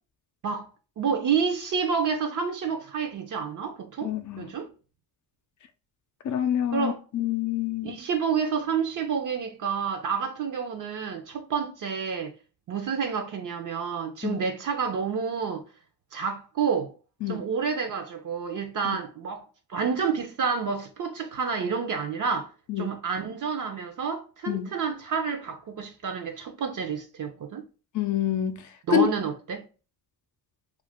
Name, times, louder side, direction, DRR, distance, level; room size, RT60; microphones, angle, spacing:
voice 1, 1.0-4.7 6.7-7.0 7.8-12.3 12.7-15.6 16.1-16.9 17.3-19.4 19.7-22.5 22.8-27.6 28.9-29.6, right 6 dB, 50° right, 0.5 m, -29 dB
voice 2, 4.0-4.5 6.2-8.0 14.2-14.4 17.2-17.4 22.7-22.9 24.5-24.7 27.9-28.6 28.9-29.1, left 11 dB, 50° left, 0.5 m, -27 dB
2.4 x 2.1 x 3.4 m
cardioid pair, 70°, 40 cm